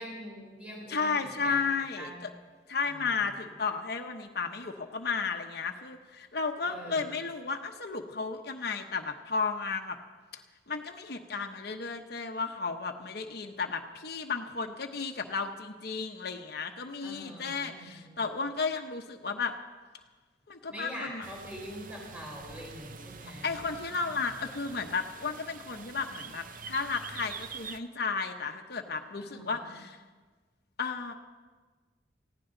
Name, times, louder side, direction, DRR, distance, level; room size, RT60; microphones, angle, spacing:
voice 1, 0.0-1.6 1.9-2.3 2.8-3.3 6.7-7.1 17.0-18.2 20.7-23.6 29.2-29.7, equal, 10° right, -3 dB, 4.4 m, -44 dB
voice 2, 0.9-2.3 2.7-10.0 10.7-19.5 20.5-21.3 23.4-30.0 30.8-31.1, left 5 dB, 65° left, 3 dB, 1.0 m, -33 dB
sound 1, 21.2-27.8, right 6 dB, 50° right, 0.6 m, -46 dB
19.0 x 15.5 x 3.9 m, 1.4 s
head